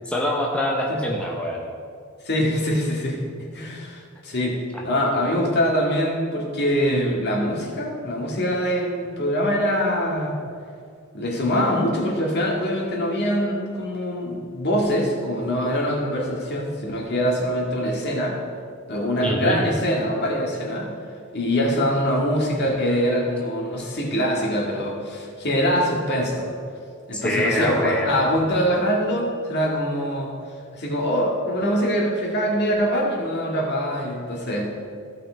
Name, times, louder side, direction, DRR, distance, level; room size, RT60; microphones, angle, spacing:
voice 1, 0.1-1.7 4.7-4.8 19.2-19.6 27.1-28.2, left 1 dB, 5° left, -3 dB, 0.9 m, -25 dB
voice 2, 2.2-10.4 11.1-18.4 18.9-20.9 21.3-26.5 27.1-30.3 30.7-34.7, equal, 55° left, -2 dB, 2.0 m, -23 dB
15.0 x 5.6 x 4.4 m, 2.3 s
head